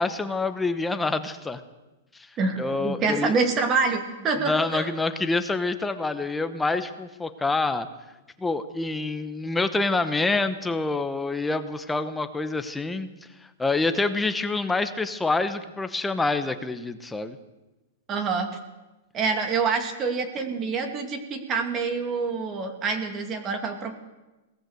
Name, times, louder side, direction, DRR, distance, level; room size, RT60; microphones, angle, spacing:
voice 1, 0.0-1.6 2.1-2.3 2.6-3.3 4.4-7.9 8.4-13.1 13.6-17.4, left 3 dB, 5° left, 10 dB, 1.0 m, -26 dB
voice 2, 2.4-4.9 18.1-18.5 19.1-24.0, right 4 dB, 20° right, 6 dB, 2.4 m, -26 dB
21.5 x 18.0 x 8.0 m, 1.1 s
supercardioid pair, 165°, 0 cm